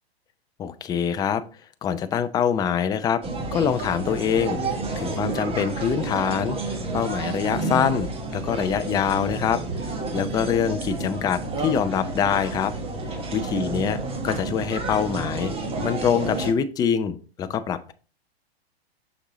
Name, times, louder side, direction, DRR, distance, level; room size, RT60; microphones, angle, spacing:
voice 1, 0.6-1.4 1.8-3.2 3.5-9.6 10.1-12.7 13.3-15.5 15.8-17.9, left 8 dB, 10° left, 10 dB, 0.4 m, -25 dB
sound 1, 3.2-16.5, right 3 dB, 15° right, 1.3 m, -30 dB
6.4 x 6.3 x 3.0 m, 0.35 s
hypercardioid pair, 120°, 32 cm